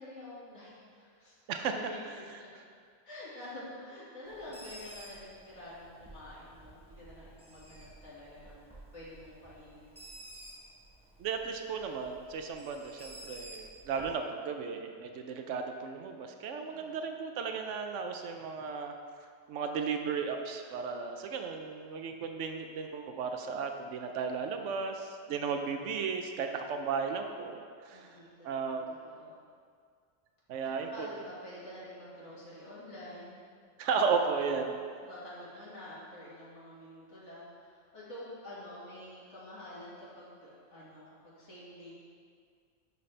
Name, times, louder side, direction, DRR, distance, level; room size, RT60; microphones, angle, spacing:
voice 1, 0.0-1.4 1.7-2.5 3.0-8.6 8.9-10.0 16.7-17.0 25.3-25.8 27.9-29.3 30.6-33.4 34.4-41.9, left 1 dB, 70° left, -8 dB, 2.2 m, -48 dB
Bird, 4.3-14.1, right 1 dB, 5° right, 0.9 m, -52 dB
voice 2, 11.2-18.9 19.5-28.1 28.4-28.9 30.5-31.1 33.8-34.7, right 5 dB, 80° right, 5 dB, 0.9 m, -35 dB
11.5 x 4.1 x 3.3 m, 2.1 s
omnidirectional pair, 1.3 m